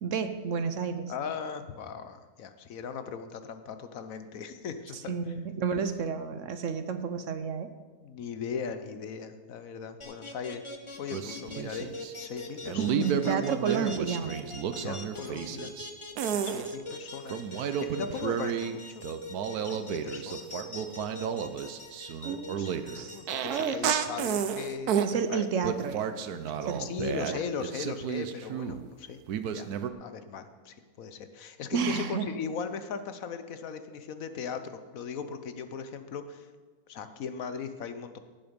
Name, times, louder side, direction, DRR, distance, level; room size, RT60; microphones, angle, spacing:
voice 1, 0.0-1.1 4.9-7.7 12.8-14.3 22.2-23.9 25.0-26.0 26.6-26.9 27.3-27.4 31.7-32.3, right 6 dB, 60° right, 10 dB, 1.0 m, -31 dB
voice 2, 1.1-5.1 8.0-10.6 11.0-13.5 14.8-15.7 16.3-19.0 19.6-20.5 22.6-25.0 25.3-25.5 26.8-29.2 29.5-29.7 30.0-36.5 36.9-38.2, left 6 dB, 70° left, 10 dB, 1.2 m, -38 dB
sound 1, 10.0-23.6, left 2 dB, 25° left, 0.9 m, -42 dB
sound 2, 11.1-12.1 12.6-15.9 16.2-16.7 17.3-18.8 19.0-25.1 25.6-28.9 29.3-29.9, right 8 dB, 85° right, 1.2 m, -32 dB
17.0 x 7.9 x 5.2 m, 1.4 s
omnidirectional pair, 1.6 m